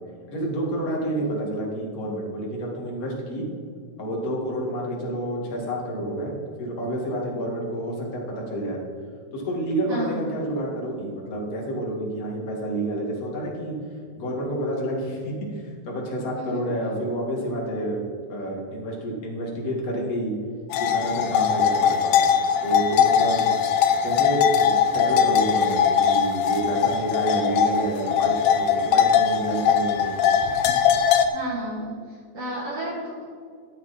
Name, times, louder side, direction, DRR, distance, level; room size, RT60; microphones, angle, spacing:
voice 1, 0.3-3.4 4.0-6.3 6.6-8.8 9.3-13.7 14.2-18.0 18.3-20.3 20.8-22.2 22.6-23.6 24.0-30.2, right 1 dB, 30° left, -2 dB, 1.8 m, -29 dB
voice 2, 9.9-10.2 16.5-16.6 31.3-31.9 32.3-33.2, equal, 55° right, -4 dB, 1.8 m, -32 dB
sound 1, 20.7-31.3, left 8 dB, 80° left, 2.4 m, -21 dB
13.0 x 8.8 x 4.3 m, 2.1 s
omnidirectional pair, 4.5 m